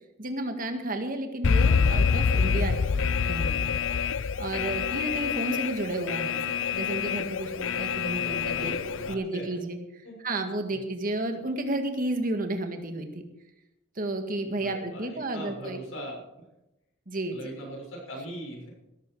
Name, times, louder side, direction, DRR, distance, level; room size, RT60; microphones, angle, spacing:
voice 1, 0.2-3.8 4.4-6.4 6.7-8.7 9.1-9.8 10.2-13.2 14.0-15.8 17.1-17.6, right 1 dB, 45° right, 5 dB, 1.9 m, -32 dB
Alarm, 1.4-9.1, left 5 dB, 70° left, 0.5 m, -26 dB
voice 2, 4.8-5.1 8.1-9.5 10.0-10.8 14.3-16.4 17.3-18.7, right 1 dB, 90° left, -1 dB, 6.4 m, -41 dB
17.5 x 13.5 x 4.8 m, 0.95 s
head